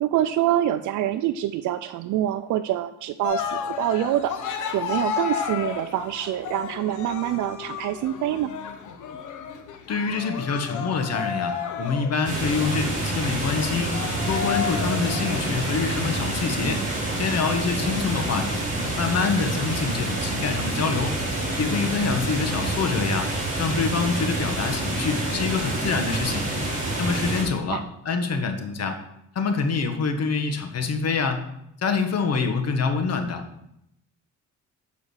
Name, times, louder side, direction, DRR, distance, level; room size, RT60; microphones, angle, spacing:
voice 1, 0.0-8.5 27.5-27.8, right 12 dB, 75° right, 10 dB, 0.4 m, -26 dB
Cheering, 3.2-15.6, left 7 dB, 80° left, 1.0 m, -32 dB
voice 2, 9.9-13.9 14.3-16.8 17.1-18.6 18.9-21.2 21.6-23.3 23.6-26.4 27.0-29.0 29.3-31.4 31.8-33.4, left 4 dB, 55° left, 6 dB, 1.3 m, -26 dB
sound 1, 12.2-27.4, right 2 dB, 25° right, 3.7 m, -27 dB
6.9 x 5.0 x 6.3 m, 0.81 s
cardioid pair, 90°, 30 cm